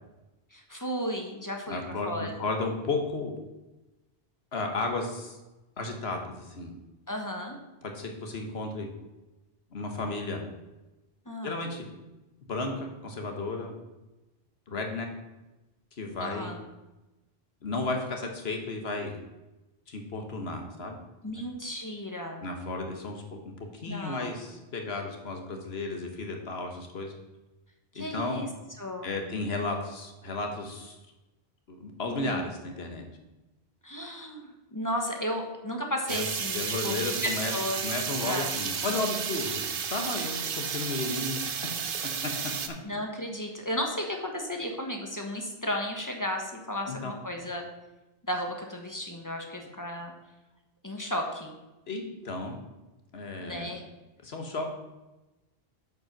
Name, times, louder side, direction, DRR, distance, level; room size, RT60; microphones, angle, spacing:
voice 1, 0.5-2.4 7.1-7.6 11.3-11.6 16.2-16.6 21.2-22.5 23.9-24.3 27.9-28.5 28.8-29.2 32.0-32.5 33.8-37.8 38.2-38.5 38.9-39.0 42.8-47.6 48.3-50.1 50.8-51.5 53.4-53.8, equal, 20° left, 2 dB, 1.1 m, -34 dB
voice 2, 1.7-3.3 4.5-5.4 5.8-6.7 7.8-8.9 9.7-10.4 11.4-11.9 12.5-13.7 14.7-15.1 16.0-16.5 17.6-19.1 19.9-21.0 22.4-27.1 27.9-28.5 29.0-31.0 31.7-33.0 36.1-36.3 36.5-37.5 37.8-39.6 39.9-41.5 46.9-47.1 51.9-52.6 53.1-53.8 54.2-54.6, left 3 dB, 90° left, 3 dB, 1.5 m, -33 dB
sound 1, 36.1-42.7, right 6 dB, 65° right, 0.9 m, -32 dB
8.0 x 5.3 x 5.9 m, 1.0 s
omnidirectional pair, 1.0 m